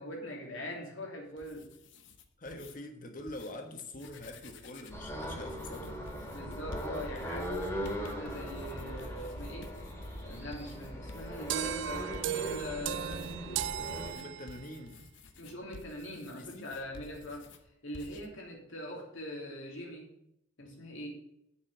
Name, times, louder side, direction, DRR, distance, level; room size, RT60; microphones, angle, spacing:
voice 1, 0.0-1.7 6.3-9.7 10.2-13.7 15.4-17.5 17.8-20.1 20.6-21.1, left 1 dB, 85° left, 0 dB, 2.9 m, -42 dB
sound 1, 1.2-2.7 3.2-3.5 3.9-5.0 5.5-12.7 13.1-17.6 17.9-18.3, left 3 dB, 70° left, 0.9 m, -52 dB
voice 2, 2.4-6.0 14.1-14.9 16.3-16.7, left 1 dB, 40° left, 5 dB, 1.3 m, -44 dB
sound 2, 4.9-14.1, equal, 15° left, 2.1 m, -40 dB
sound 3, 11.5-14.8, right 11 dB, 70° right, 0.4 m, -36 dB
7.2 x 6.1 x 7.8 m, 0.79 s
head